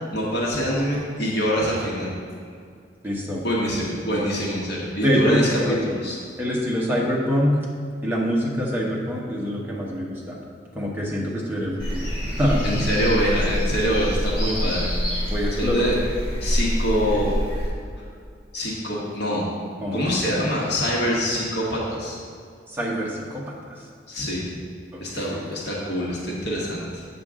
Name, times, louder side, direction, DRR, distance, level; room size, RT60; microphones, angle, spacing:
voice 1, 0.1-2.1 3.4-6.2 12.6-14.9 15.6-16.0 16.4-17.4 18.5-19.5 19.9-22.2 24.1-24.4 25.0-27.0, equal, 60° left, -4 dB, 1.4 m, -25 dB
voice 2, 3.0-3.4 5.0-5.8 6.4-7.6 8.0-10.4 10.7-12.9 15.3-15.8 19.8-20.0 22.7-23.7 24.9-25.2, equal, 10° right, -4 dB, 1.1 m, -25 dB
sound 1, 11.8-17.7, equal, 25° left, 2.1 m, -26 dB
8.0 x 6.7 x 3.7 m, 2.2 s
head